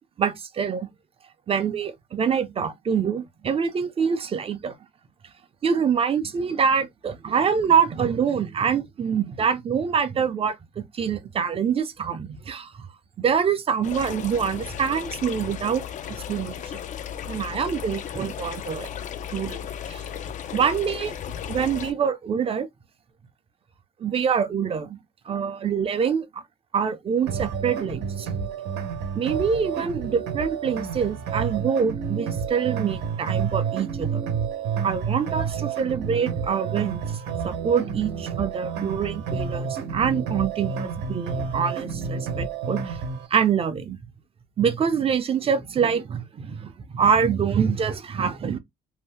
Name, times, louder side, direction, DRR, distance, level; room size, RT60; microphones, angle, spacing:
voice 1, 0.2-0.9 1.5-4.7 5.6-12.9 13.2-16.5 17.3-18.9 19.3-19.6 19.9-20.0 20.5-21.2 21.5-22.7 24.0-25.0 25.3-26.4 26.7-28.3 29.1-34.2 34.8-37.0 37.4-43.0 43.3-44.0 44.6-48.6, right 7 dB, 35° right, 0.6 m, -25 dB
sound 1, 13.8-21.9, left 9 dB, 45° left, 0.4 m, -35 dB
sound 2, 27.3-43.3, right 6 dB, 80° right, 0.8 m, -30 dB
2.7 x 2.0 x 3.4 m
cardioid pair, 110°, 17 cm